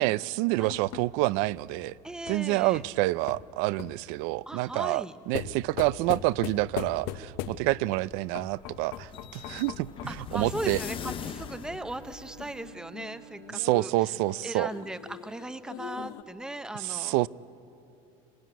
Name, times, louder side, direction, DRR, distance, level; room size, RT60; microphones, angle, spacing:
voice 1, 0.0-1.9 2.3-10.8 13.5-14.7 16.7-17.3, right 19 dB, 75° right, 0.5 m, -28 dB
sound 1, 0.7-4.1 5.3-7.9 8.3-10.3 12.4-16.2, left 11 dB, 70° left, 1.0 m, -41 dB
voice 2, 2.0-2.8 4.5-5.1 10.1-13.9 14.4-17.3, right 1 dB, 5° right, 0.7 m, -38 dB
sound 2, 7.7-12.7, left 9 dB, 30° left, 0.6 m, -41 dB
Bowed string instrument, 10.0-14.7, right 8 dB, 60° right, 0.8 m, -52 dB
25.0 x 19.0 x 9.3 m
cardioid pair, 140°, 17 cm